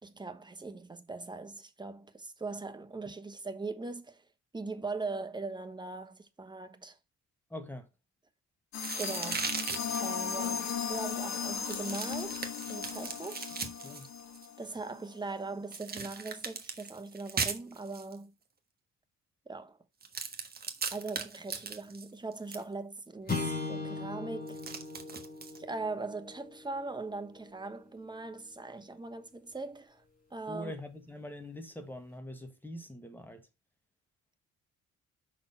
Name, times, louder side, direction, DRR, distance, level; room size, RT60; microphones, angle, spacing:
voice 1, 0.0-4.3 4.5-7.0 8.9-9.5 10.0-13.5 14.6-18.3 19.5-19.8 20.9-24.6 25.5-30.0 30.3-30.7, right 3 dB, 15° right, 1.1 m, -40 dB
voice 2, 7.5-7.9 13.8-14.1 30.5-33.5, left 1 dB, 5° left, 1.5 m, -43 dB
sound 1, 8.7-15.0, left 7 dB, 65° left, 1.3 m, -37 dB
sound 2, 8.8-10.1 11.6-14.5 15.7-18.2 20.0-22.6 24.5-25.6, right 5 dB, 30° right, 1.3 m, -38 dB
sound 3, 23.3-27.8, left 3 dB, 30° left, 3.3 m, -39 dB
5.8 x 4.3 x 5.5 m
cardioid pair, 90°, 30 cm